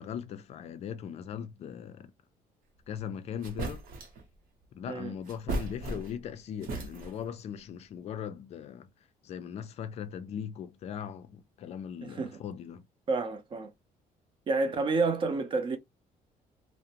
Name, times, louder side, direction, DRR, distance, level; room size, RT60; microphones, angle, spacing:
voice 1, 0.0-2.1 2.9-3.8 4.7-8.9 9.2-12.8, left 8 dB, 45° left, 0.4 m, -39 dB
sound 1, 3.0-3.1 3.4-4.2 5.2-6.3 6.6-7.3, right 2 dB, 70° right, 0.8 m, -36 dB
voice 2, 12.0-12.4 13.1-13.7 14.5-15.8, right 3 dB, 35° right, 0.5 m, -29 dB
2.4 x 2.0 x 2.8 m
cardioid pair, 180°, 15 cm